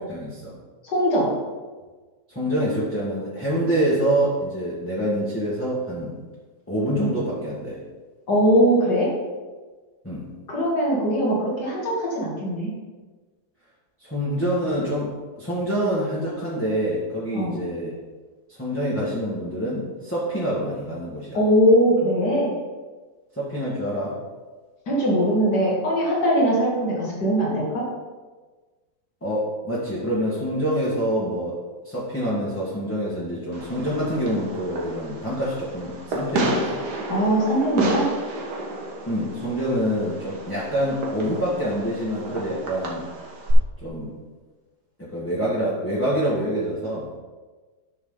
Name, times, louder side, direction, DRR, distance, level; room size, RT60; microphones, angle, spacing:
voice 1, 0.1-0.5 2.3-6.2 6.7-7.8 10.0-10.3 14.0-15.1 15.4-17.9 18.5-21.4 23.4-24.2 29.2-31.6 31.8-36.8 39.1-43.0 43.8-44.1 45.0-47.2, equal, 10° left, -8 dB, 1.6 m, -26 dB
voice 2, 0.8-1.3 8.3-9.1 10.5-12.7 17.3-17.5 21.3-22.5 24.9-27.8 37.1-38.0, equal, 90° left, -5 dB, 3.0 m, -21 dB
Fireworks, 33.5-43.5, right 2 dB, 80° right, 2.0 m, -31 dB
10.5 x 6.4 x 3.9 m, 1.3 s
omnidirectional pair, 1.7 m